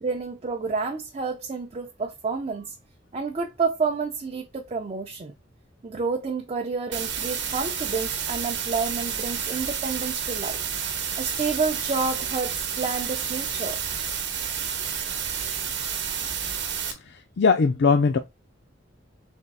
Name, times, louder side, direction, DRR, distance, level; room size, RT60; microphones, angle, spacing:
voice 1, 0.0-2.7 3.1-5.3 5.8-10.6 11.2-13.8, right 4 dB, 35° right, 0.5 m, -29 dB
Noise Mix, 6.9-16.9, right 7 dB, 65° right, 0.9 m, -30 dB
voice 2, 17.1-18.2, left 4 dB, 60° left, 0.4 m, -20 dB
3.5 x 3.1 x 4.0 m
head